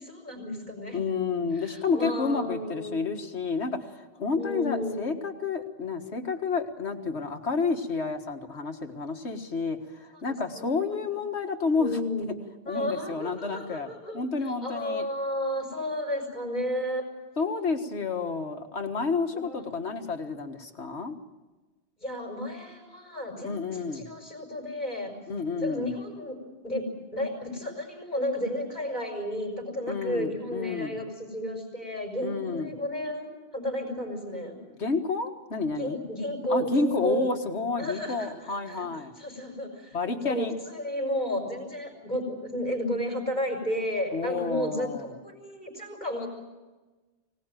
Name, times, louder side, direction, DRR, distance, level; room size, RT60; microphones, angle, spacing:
voice 1, 0.0-1.0 1.6-3.0 4.4-5.1 10.5-10.6 11.7-12.3 12.6-17.0 19.3-19.7 22.0-25.1 25.6-26.4 26.6-26.8 27.1-34.6 35.7-37.3 37.8-38.9 39.2-46.3, left 1 dB, 40° left, 2 dB, 5.5 m, -32 dB
voice 2, 0.9-12.0 12.7-15.0 17.4-21.2 23.4-24.1 25.3-25.9 29.9-31.0 32.2-32.7 34.8-36.0 36.5-39.1 39.9-40.5 44.1-45.1, left 4 dB, 75° left, 6 dB, 1.9 m, -30 dB
24.5 x 18.0 x 9.2 m, 1.2 s
omnidirectional pair, 1.1 m